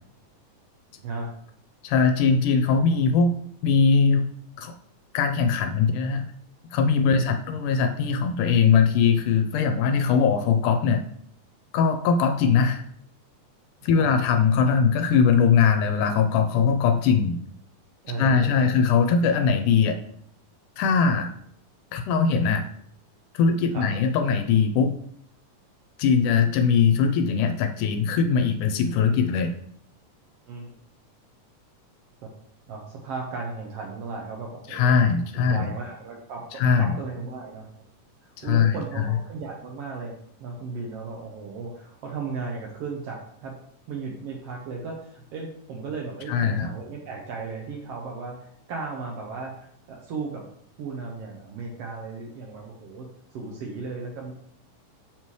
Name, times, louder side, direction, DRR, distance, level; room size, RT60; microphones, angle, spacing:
voice 1, 1.0-1.3 7.1-7.3 14.0-14.1 18.0-18.8 23.7-23.9 30.5-30.8 32.2-32.3 32.7-35.0 35.3-37.7 38.2-40.1 40.4-43.5 43.9-50.4 50.8-54.3, right 4 dB, 80° right, 0 dB, 1.3 m, -36 dB
voice 2, 1.8-3.4 3.6-4.3 4.6-4.7 5.1-6.2 6.7-11.0 11.7-12.8 13.8-17.4 18.2-20.0 20.8-21.3 21.9-22.6 23.3-24.9 26.0-29.5 34.7-35.7 36.6-36.9 38.4-39.1 46.3-46.7, left 6 dB, 80° left, 5 dB, 2.0 m, -21 dB
7.2 x 4.4 x 3.1 m, 0.65 s
omnidirectional pair, 3.8 m